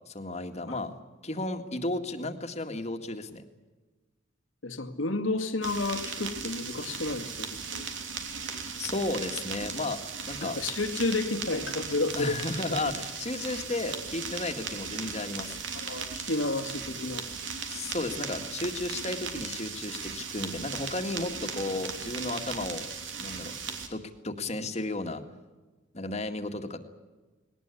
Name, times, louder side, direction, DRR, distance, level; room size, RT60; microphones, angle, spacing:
voice 1, 0.1-0.9 1.2-3.4 8.8-10.0 10.3-10.6 12.2-15.6 17.7-22.9 23.2-23.5 23.9-25.2 25.9-26.8, left 2 dB, 35° left, 6 dB, 2.0 m, -33 dB
voice 2, 4.6-7.8 10.4-12.4 12.7-12.8 15.7-17.2, left 2 dB, 85° left, 7 dB, 2.2 m, -31 dB
sound 1, 5.6-23.9, right 5 dB, 70° right, 3.2 m, -37 dB
20.5 x 19.0 x 9.8 m, 1.2 s
head